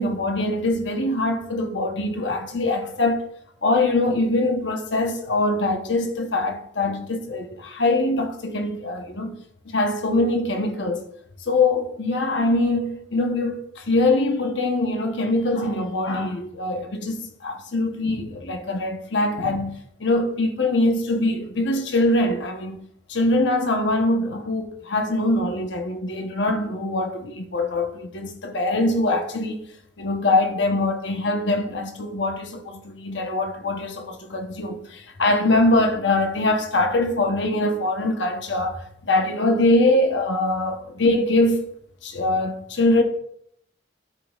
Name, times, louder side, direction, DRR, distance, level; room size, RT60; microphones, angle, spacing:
voice 1, 0.0-3.2 3.6-9.4 9.7-11.0 11.5-29.7 30.0-41.6 42.0-43.0, left 2 dB, 75° left, 1.0 m, -23 dB
12.5 x 5.2 x 2.4 m
head